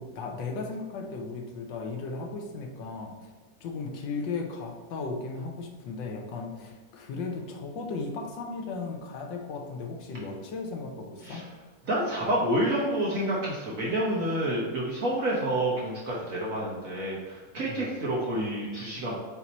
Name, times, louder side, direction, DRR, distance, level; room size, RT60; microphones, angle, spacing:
voice 1, 0.0-3.3 3.6-11.5 17.7-17.9, left 4 dB, 80° left, 1 dB, 1.5 m, -36 dB
voice 2, 11.9-19.2, right 1 dB, 55° right, -5 dB, 1.2 m, -28 dB
7.9 x 2.9 x 4.1 m, 1.3 s
omnidirectional pair, 2.0 m